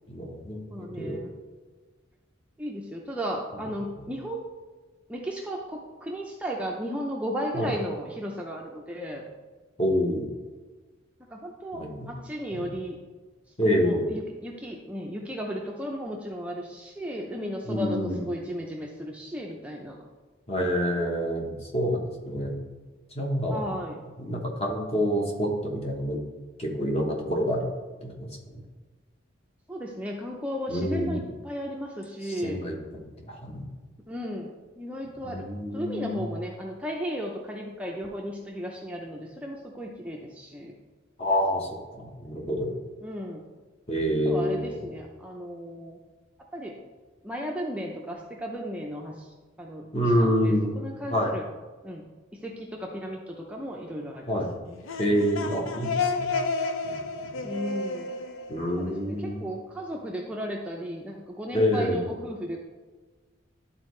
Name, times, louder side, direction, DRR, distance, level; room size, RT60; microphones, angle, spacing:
voice 1, 0.1-1.2 3.9-4.1 7.5-7.7 9.8-10.2 11.7-12.1 12.5-12.7 13.6-14.1 17.6-18.2 20.5-22.5 23.1-23.7 24.2-26.2 26.6-27.7 28.0-28.6 30.7-31.2 32.2-33.7 35.2-36.3 41.2-41.7 41.9-42.7 43.9-44.9 49.9-50.7 51.1-51.3 54.3-54.5 55.0-56.3 56.8-57.0 57.3-57.4 58.5-59.4 61.5-62.0, equal, 30° left, 0 dB, 1.2 m, -27 dB
voice 2, 0.7-1.3 2.6-4.4 5.1-9.2 11.3-13.0 13.6-20.0 23.5-23.9 29.7-32.6 34.1-35.4 35.7-40.7 43.0-43.4 44.2-46.0 46.5-46.7 47.2-49.1 49.6-49.8 50.1-51.4 51.8-52.0 52.4-54.2 57.4-58.1 58.8-62.6, equal, 5° right, -1 dB, 0.6 m, -35 dB
sound 1, 54.7-59.4, left 4 dB, 80° left, 0.6 m, -31 dB
11.5 x 4.1 x 3.2 m, 1.3 s
head